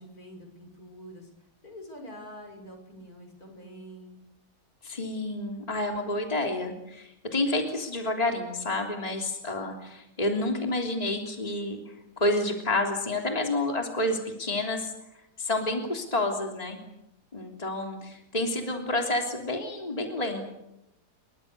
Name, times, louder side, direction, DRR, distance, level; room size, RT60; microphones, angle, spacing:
voice 1, 0.0-4.2, equal, 65° left, 4 dB, 6.7 m, -46 dB
voice 2, 4.8-14.9 15.4-16.8 17.3-20.4, left 2 dB, 25° left, 2 dB, 3.4 m, -29 dB
29.0 x 23.5 x 6.9 m, 0.87 s
omnidirectional pair, 1.7 m